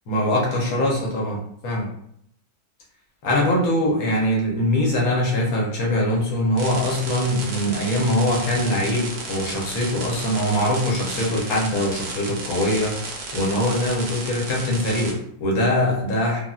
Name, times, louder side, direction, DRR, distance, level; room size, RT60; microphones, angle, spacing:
voice 1, 0.1-1.9 3.2-13.0 13.3-16.4, left 1 dB, 60° left, -3 dB, 1.0 m, -22 dB
sound 1, 6.6-15.1, right 3 dB, 65° right, 1.0 m, -33 dB
3.5 x 2.1 x 2.3 m, 0.72 s
omnidirectional pair, 2.1 m